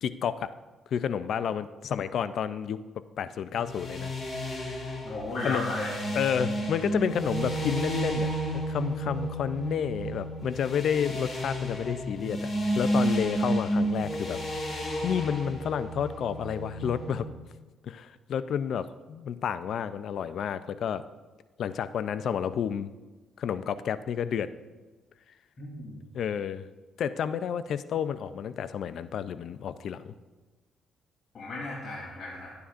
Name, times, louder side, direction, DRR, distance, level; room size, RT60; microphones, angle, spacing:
voice 1, 0.0-0.5 0.9-2.8 3.2-4.1 4.5-5.0 5.4-5.6 6.2-12.5 12.8-14.4 15.0-17.3 17.8-21.0 21.6-22.9 23.4-24.5 26.1-26.7 27.0-30.1, left 8 dB, 65° left, 13 dB, 0.4 m, -30 dB
sound 1, 3.6-17.2, right 1 dB, 30° left, 2.8 m, -31 dB
voice 2, 5.0-5.9 25.6-26.0 31.3-32.5, left 2 dB, 50° left, -7 dB, 3.1 m, -34 dB
12.5 x 9.6 x 2.5 m, 1.3 s
cardioid pair, 90°, 0 cm